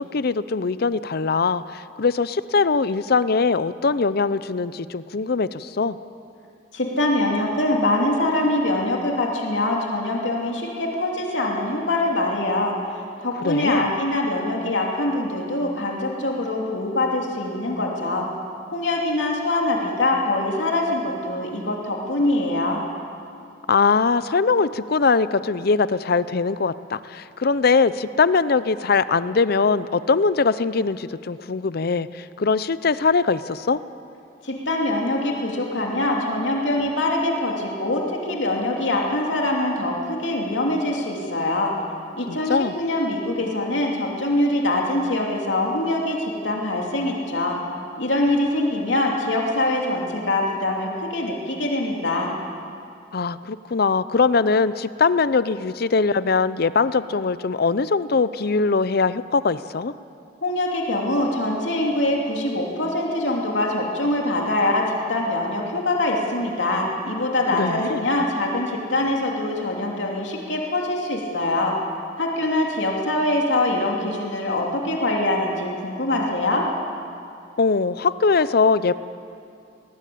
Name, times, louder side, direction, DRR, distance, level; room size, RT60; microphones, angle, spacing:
voice 1, 0.0-6.0 13.4-13.8 23.7-33.8 42.3-42.7 53.1-59.9 67.5-68.0 77.6-78.9, left 4 dB, 55° left, 15 dB, 0.6 m, -21 dB
voice 2, 6.7-12.7 13.2-18.2 18.7-22.8 34.4-41.7 42.2-47.6 48.0-52.3 60.4-71.7 72.2-76.7, left 1 dB, 80° left, -1 dB, 2.9 m, -23 dB
20.0 x 20.0 x 8.6 m, 2.5 s
head